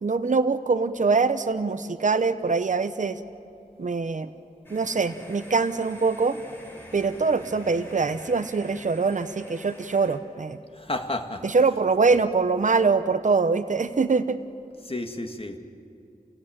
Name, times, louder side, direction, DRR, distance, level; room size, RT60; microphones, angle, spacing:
voice 1, 0.0-3.2 3.8-4.3 4.7-6.4 6.9-10.6 11.4-14.4, right 4 dB, 55° right, 10 dB, 0.9 m, -23 dB
sound 1, 4.6-10.2, equal, 15° left, 4.2 m, -47 dB
voice 2, 10.7-11.5 12.1-12.2 14.8-15.6, left 2 dB, 35° left, 5 dB, 2.0 m, -31 dB
28.0 x 16.5 x 8.8 m, 2.5 s
wide cardioid pair, 55°, 15 cm